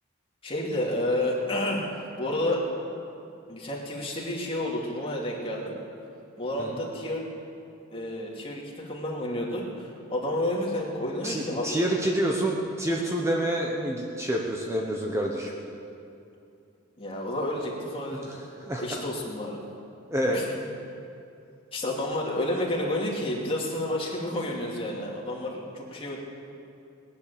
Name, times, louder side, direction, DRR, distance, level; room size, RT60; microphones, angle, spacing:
voice 1, 0.4-2.6 3.5-5.7 6.4-7.2 7.9-11.7 17.0-18.3 18.8-19.6 20.3-20.4 21.7-26.2, left 1 dB, 25° left, -3 dB, 2.6 m, -30 dB
voice 2, 11.2-15.5 18.1-19.0 20.1-20.4, right 1 dB, 15° right, -1 dB, 1.0 m, -28 dB
19.0 x 10.5 x 7.0 m, 2.6 s
head